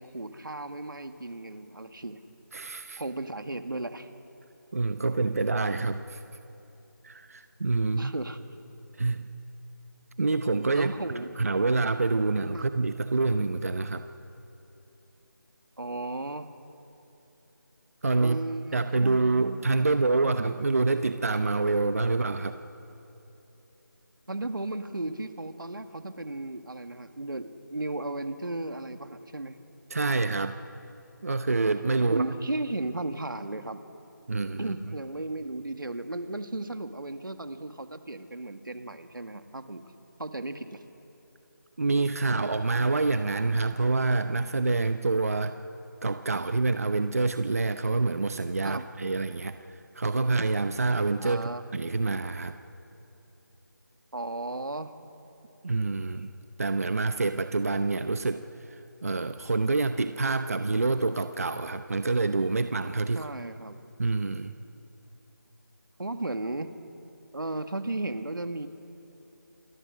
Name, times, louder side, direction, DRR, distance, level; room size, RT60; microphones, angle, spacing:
voice 1, 0.0-2.2 3.0-4.1 8.0-8.4 10.7-11.3 12.5-12.7 15.8-16.5 18.2-19.7 24.3-29.6 32.1-33.8 34.6-39.8 40.2-40.8 48.6-48.9 51.2-51.6 54.1-54.9 63.2-63.8 66.0-66.7 67.3-68.7, right 2 dB, 85° right, 8 dB, 2.0 m, -35 dB
voice 2, 2.5-3.0 4.7-6.2 7.0-8.1 9.0-9.3 10.2-10.9 11.4-14.0 18.0-18.4 18.7-22.6 29.9-30.6 31.2-32.2 34.3-34.7 41.8-45.5 46.0-49.6 49.9-52.5 55.6-56.3 56.6-58.4 58.7-63.3 64.0-64.5, right 3 dB, 45° right, 9 dB, 0.9 m, -27 dB
27.5 x 20.0 x 6.4 m, 3.0 s
figure-of-eight pair, 175°, 11 cm